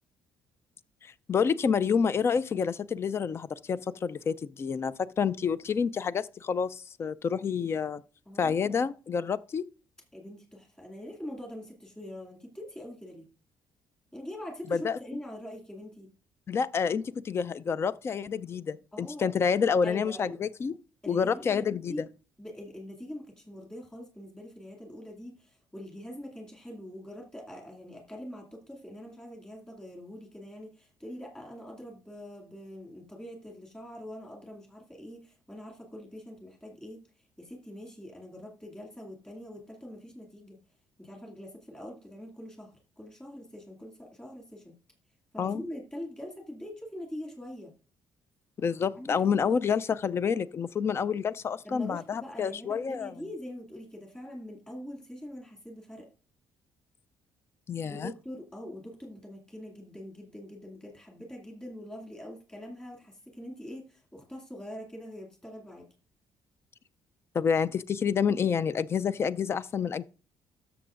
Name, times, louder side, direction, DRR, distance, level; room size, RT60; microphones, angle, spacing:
voice 1, 1.0-8.0 8.4-9.6 14.7-15.0 16.5-20.7 21.1-22.1 45.4-45.6 48.6-53.1 57.7-58.1 67.3-70.1, left 6 dB, 35° left, 0.4 m, -28 dB
voice 2, 8.3-8.8 10.1-13.3 14.1-16.1 18.9-19.3 19.8-20.4 21.0-22.0 22.4-37.0 37.4-40.6 41.0-44.7 45.3-47.7 48.9-49.3 51.6-56.1 57.9-65.9, left 1 dB, 10° left, 2.4 m, -43 dB
13.0 x 6.8 x 2.5 m
cardioid pair, 115°, 7 cm